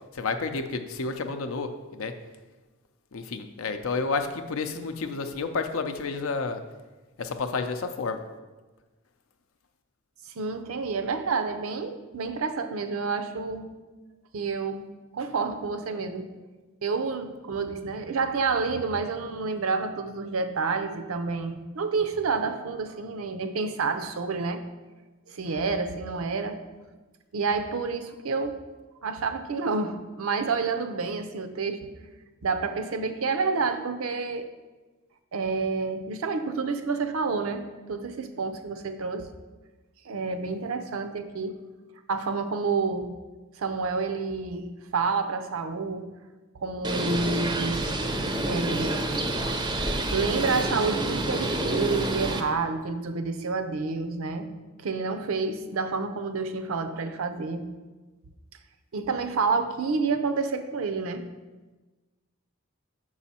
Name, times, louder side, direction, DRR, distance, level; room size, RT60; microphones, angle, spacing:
voice 1, 0.1-2.1 3.1-6.6 7.2-8.2, left 4 dB, 70° left, 7 dB, 0.5 m, -30 dB
voice 2, 10.3-13.7 14.3-14.9 15.1-16.3 16.8-24.6 25.3-26.6 27.3-28.6 29.0-31.8 32.4-34.5 35.3-39.3 40.0-41.5 42.1-43.1 43.6-46.1 46.6-47.9 48.3-49.0 50.1-54.5 54.8-57.7 58.9-61.2, right 4 dB, 75° right, 8 dB, 0.5 m, -29 dB
Bird, 46.8-52.4, right 2 dB, 20° right, 0.5 m, -28 dB
6.0 x 4.8 x 4.2 m, 1.2 s
head